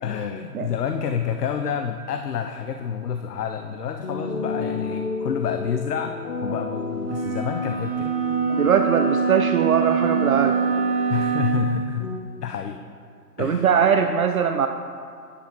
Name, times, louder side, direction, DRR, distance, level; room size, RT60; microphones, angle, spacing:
voice 1, 0.0-6.1 6.4-8.1 11.1-12.1 12.4-12.8 13.4-13.7, left 8 dB, 70° left, 6 dB, 0.7 m, -28 dB
sound 1, 4.0-12.2, left 4 dB, 45° left, 1.0 m, -32 dB
sound 2, 7.0-11.7, right 7 dB, 15° right, 1.0 m, -24 dB
voice 2, 8.5-10.6 13.4-14.7, right 7 dB, 60° right, 6 dB, 0.5 m, -21 dB
9.7 x 7.2 x 3.9 m, 2.3 s
hypercardioid pair, 155°, 49 cm